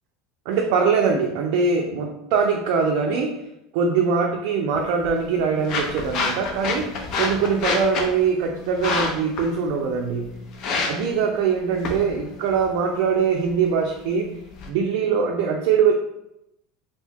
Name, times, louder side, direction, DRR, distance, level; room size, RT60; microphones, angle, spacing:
voice 1, 0.5-3.4 3.7-6.9 7.2-10.4 10.9-14.4 14.7-15.9, right 5 dB, 70° right, 1 dB, 0.3 m, -22 dB
sound 1, 4.7-14.7, left 3 dB, 55° left, 0.5 m, -30 dB
2.6 x 2.1 x 3.4 m, 0.83 s
supercardioid pair, 115°, 0 cm